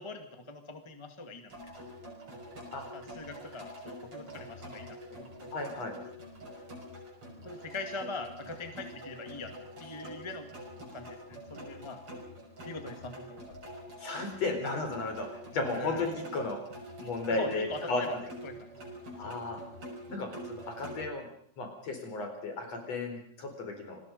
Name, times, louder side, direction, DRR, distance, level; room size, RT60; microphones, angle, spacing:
voice 1, 0.0-1.7 2.9-5.8 7.4-9.5 9.8-10.5 10.9-12.0 12.6-13.6 15.7-16.1 17.3-18.7 19.2-19.4, left 3 dB, 10° left, 6 dB, 1.8 m, -42 dB
sound 1, 1.5-21.0, equal, 50° right, 7.0 m, -46 dB
voice 2, 5.5-5.9 14.0-15.3 15.5-16.6 17.0-18.0 19.2-19.6 20.1-21.3 21.6-24.0, left 3 dB, 60° left, 4 dB, 5.4 m, -34 dB
28.5 x 20.5 x 5.4 m, 0.63 s
omnidirectional pair, 3.3 m